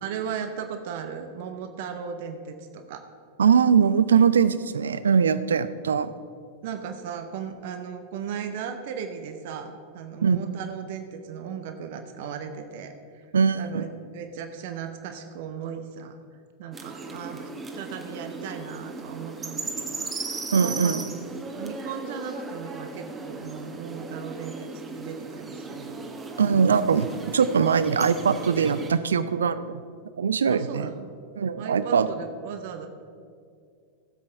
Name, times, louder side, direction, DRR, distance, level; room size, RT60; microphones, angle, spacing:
voice 1, 0.0-3.1 6.6-13.3 13.5-16.2 16.6-17.5 17.7-21.0 21.6-26.2 30.5-31.1 31.6-32.9, right 7 dB, 50° right, 7 dB, 0.9 m, -37 dB
voice 2, 3.4-6.1 10.2-10.4 13.3-13.6 20.5-21.0 26.4-29.8 30.2-30.9 31.4-32.1, right 6 dB, 70° right, 14 dB, 0.5 m, -21 dB
sound 1, 16.7-28.9, right 3 dB, 15° right, 1.4 m, -37 dB
17.0 x 7.6 x 4.5 m, 2.3 s
figure-of-eight pair, 90°, 0 cm